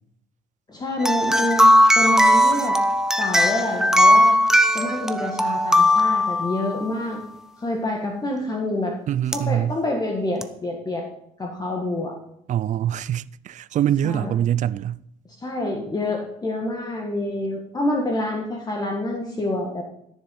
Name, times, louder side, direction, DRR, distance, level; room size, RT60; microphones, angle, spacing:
voice 1, 0.7-1.7 1.9-2.8 3.2-4.4 4.7-7.2 7.6-9.0 9.3-11.1 11.4-12.2 14.0-14.3 15.4-19.8, left 1 dB, 25° left, 1.8 m, -27 dB
sound 1, 1.0-7.0 9.3-9.4 10.4-10.5, equal, 5° right, 0.8 m, -18 dB
voice 2, 9.1-9.8 12.5-15.0, right 11 dB, 45° right, 0.4 m, -24 dB
13.5 x 7.3 x 5.5 m
cardioid pair, 110°, 17 cm